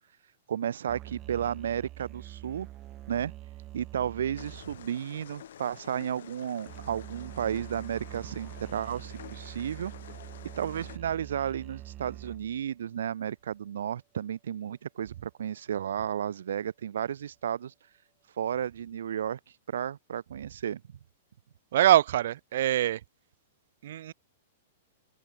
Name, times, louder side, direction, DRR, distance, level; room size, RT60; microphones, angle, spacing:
voice 1, 0.5-2.7 3.1-3.3 3.7-9.9 10.6-17.7 18.4-19.4 19.7-20.8, right 9 dB, 85° right, 0.5 m, -33 dB
sound 1, 0.9-5.8 6.7-12.7, right 15 dB, 20° right, 6.6 m, -45 dB
sound 2, 4.4-11.0, left 10 dB, 70° left, 7.1 m, -49 dB
voice 2, 21.7-23.0 23.8-24.1, right 12 dB, 55° right, 0.9 m, -23 dB
supercardioid pair, 170°, 0 cm